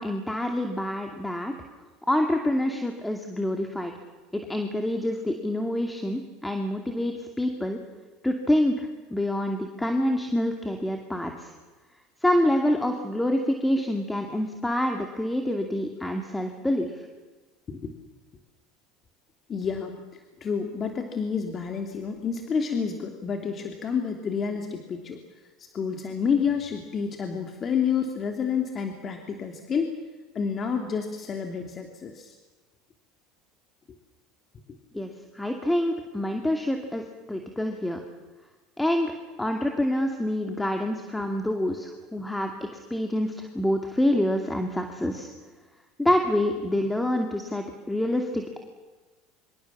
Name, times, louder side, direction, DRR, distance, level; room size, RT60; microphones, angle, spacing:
voice 1, 0.0-1.5 2.0-3.9 4.3-7.8 8.2-11.5 12.2-17.0 34.9-38.0 38.8-39.1 39.4-45.3 46.0-48.6, left 1 dB, 5° left, 4 dB, 2.5 m, -27 dB
voice 2, 19.5-25.2 25.6-29.9 30.3-32.4, left 6 dB, 35° left, 4 dB, 2.8 m, -29 dB
25.5 x 24.5 x 7.3 m, 1.3 s
supercardioid pair, 95°, 0 cm